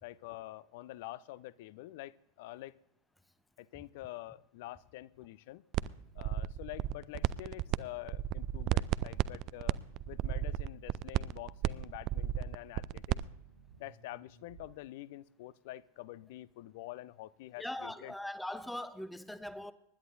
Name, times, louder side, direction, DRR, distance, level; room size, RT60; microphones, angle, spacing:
voice 1, 0.0-2.8 3.6-5.6 6.1-9.8 10.1-13.2 13.8-18.1, left 16 dB, 50° left, 0.5 m, -47 dB
sound 1, 5.7-5.9 6.2-7.8 8.0-13.2, right 14 dB, 40° right, 0.3 m, -33 dB
sound 2, 5.8-14.7, right 7 dB, 60° right, 1.9 m, -57 dB
voice 2, 17.6-19.7, left 1 dB, 5° left, 0.7 m, -41 dB
24.5 x 11.0 x 2.6 m
figure-of-eight pair, 90°, 0 cm